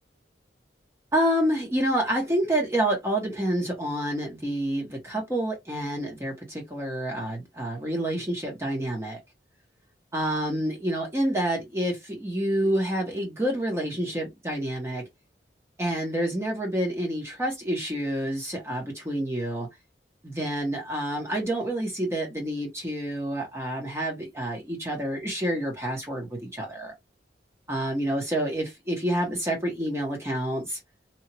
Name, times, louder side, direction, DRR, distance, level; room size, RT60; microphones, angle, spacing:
voice 1, 1.1-9.2 10.1-15.1 15.8-19.7 20.2-26.9 27.7-30.8, right 1 dB, 15° right, 0.8 m, -28 dB
2.8 x 2.4 x 2.8 m
head